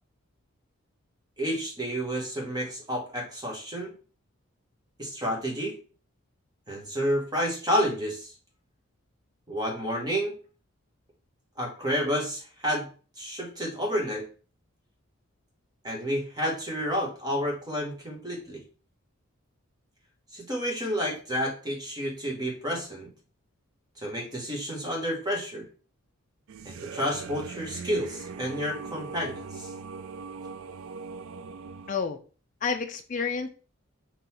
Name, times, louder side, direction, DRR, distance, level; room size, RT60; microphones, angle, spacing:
voice 1, 1.4-3.9 5.0-5.7 6.7-8.3 9.5-10.3 11.6-12.9 13.2-14.3 15.8-18.6 20.3-23.1 24.0-25.6 26.6-29.7, equal, 20° right, -1 dB, 1.1 m, -30 dB
sound 1, 26.5-32.0, right 5 dB, 75° right, 0.4 m, -40 dB
voice 2, 31.9-32.2 32.6-33.5, left 5 dB, 35° left, 5 dB, 0.3 m, -29 dB
3.8 x 3.0 x 4.2 m, 0.38 s
head